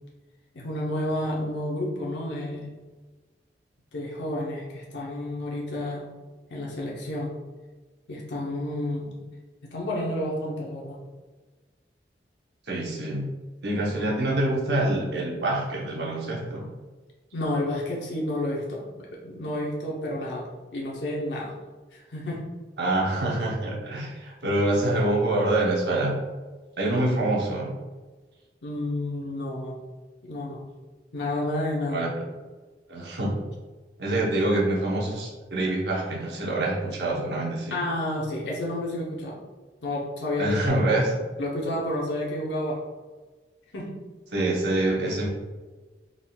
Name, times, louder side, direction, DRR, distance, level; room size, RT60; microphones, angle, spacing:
voice 1, 0.5-2.7 3.9-6.1 6.5-7.3 8.1-9.1 9.6-11.0 17.3-21.6 21.9-22.4 28.6-29.8 30.2-30.6 31.1-32.0 37.7-39.4 39.8-40.8 41.4-42.8 43.7-44.0, left 1 dB, 80° left, -3 dB, 0.7 m, -30 dB
voice 2, 12.7-13.3 13.6-16.7 22.8-26.1 26.8-27.7 31.9-32.1 32.9-33.4 34.0-37.8 40.4-41.1 44.3-45.3, right 1 dB, 70° right, -2 dB, 0.8 m, -25 dB
3.8 x 3.6 x 2.2 m, 1.3 s
head